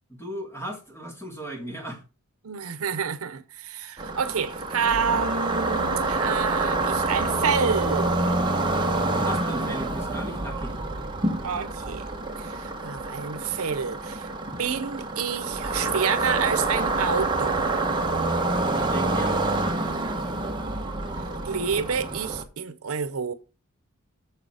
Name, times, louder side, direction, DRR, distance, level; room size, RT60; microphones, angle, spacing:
voice 1, 0.2-2.0 9.0-10.8 18.8-19.4, right 1 dB, 10° left, 2.6 m, -36 dB
voice 2, 2.4-8.4 11.4-12.1 12.4-14.3 14.6-17.7 21.4-23.3, right 6 dB, 80° right, 0.8 m, -28 dB
sound 1, 4.0-22.4, right 2 dB, 20° right, 1.1 m, -27 dB
7.1 x 6.7 x 4.8 m
head